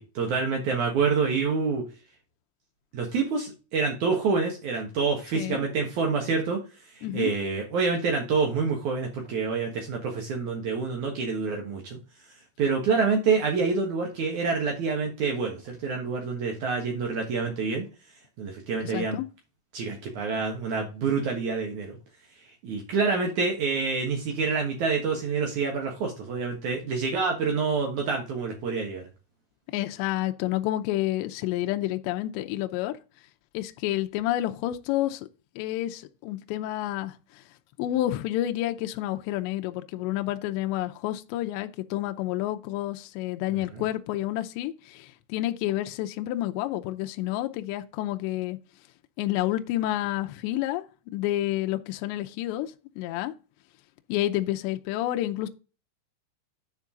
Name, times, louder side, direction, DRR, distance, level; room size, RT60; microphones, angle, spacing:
voice 1, 0.0-1.8 2.9-12.0 12.6-17.8 18.4-19.2 19.7-22.0 22.4-29.0 43.5-43.8, right 4 dB, 85° right, 1.7 m, -27 dB
voice 2, 5.3-5.7 7.0-7.3 18.8-19.3 29.7-33.0 33.5-35.3 35.6-37.2 37.8-48.6 49.2-50.8 51.1-53.3 54.1-55.5, left 14 dB, 80° left, 2.6 m, -29 dB
9.5 x 4.6 x 3.7 m
omnidirectional pair, 5.8 m